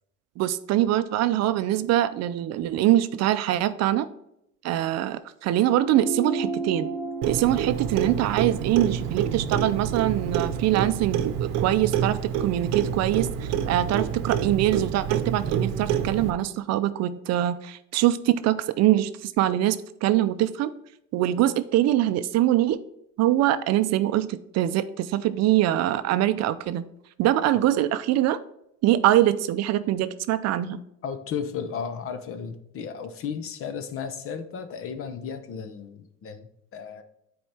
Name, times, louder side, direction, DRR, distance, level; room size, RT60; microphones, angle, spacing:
voice 1, 0.4-4.1 4.6-6.9 7.3-20.7 21.1-22.8 23.2-26.9 27.2-28.4 28.8-30.8, right 13 dB, 55° right, 12 dB, 0.5 m, -23 dB
sound 1, 5.8-10.6, right 3 dB, 10° right, 0.7 m, -34 dB
Clock, 7.2-16.3, right 8 dB, 75° right, 0.8 m, -27 dB
voice 2, 31.0-37.0, left 6 dB, 40° left, 10 dB, 0.8 m, -34 dB
9.2 x 4.5 x 3.4 m, 0.80 s
cardioid pair, 130°, 33 cm